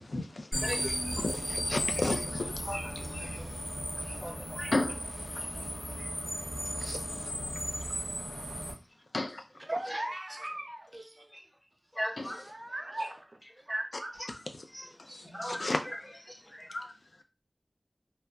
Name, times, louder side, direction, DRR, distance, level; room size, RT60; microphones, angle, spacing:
voice 1, 0.0-0.5 1.1-2.5 4.7-5.0 6.8-7.0 9.1-9.4 12.2-12.4 15.4-15.8 16.7-16.9, left 2 dB, 85° left, 0.3 m, -32 dB
sound 1, 0.5-8.7, equal, 55° left, 1.4 m, -35 dB
voice 2, 0.6-1.1 2.7-2.9 3.2-3.3 4.2-4.7 12.0-12.4 14.7-14.8 15.3-15.6, equal, 15° left, 0.9 m, -37 dB
voice 3, 9.6-11.3 12.2-13.2 13.7-14.1, right 1 dB, 40° right, 0.5 m, -38 dB
2.7 x 2.2 x 2.3 m
wide cardioid pair, 50°, 0 cm